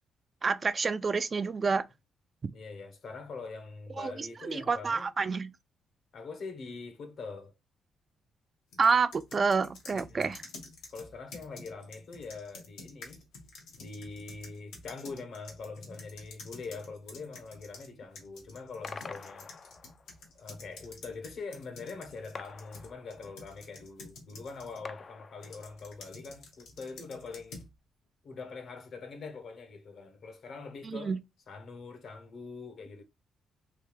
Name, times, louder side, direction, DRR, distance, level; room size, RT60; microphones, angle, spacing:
voice 1, 0.4-1.8 4.0-5.5 8.8-10.4 30.8-31.2, right 5 dB, 35° right, 0.3 m, -28 dB
voice 2, 2.5-5.1 6.1-7.5 9.9-10.4 10.9-13.2 13.8-19.5 20.3-27.6 28.2-31.2 31.5-33.0, left 4 dB, 60° left, 0.9 m, -43 dB
sound 1, 8.7-17.9 18.2-24.8 25.4-27.7, left 3 dB, 90° left, 1.2 m, -49 dB
sound 2, 18.8-20.2 22.3-23.5 24.8-26.0, left 4 dB, 40° left, 0.4 m, -46 dB
3.3 x 2.8 x 3.2 m
cardioid pair, 90°, 0 cm